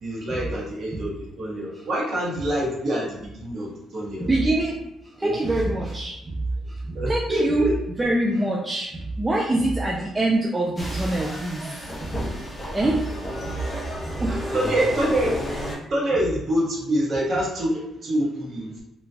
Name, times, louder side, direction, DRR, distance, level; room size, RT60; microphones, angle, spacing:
voice 1, 0.0-4.3 5.2-5.4 6.9-7.7 12.6-12.7 14.5-15.3 15.9-18.7, equal, 40° right, -5 dB, 1.1 m, -26 dB
voice 2, 4.2-4.8 5.2-6.4 6.7-7.7 8.0-11.7 12.0-12.3 12.7-13.0 13.4-13.6 14.1-14.9, right 2 dB, 15° right, -4 dB, 0.3 m, -24 dB
sound 1, 10.8-15.7, equal, 15° left, 0.7 m, -31 dB
2.8 x 2.2 x 2.7 m, 0.87 s
cardioid pair, 145°, 0 cm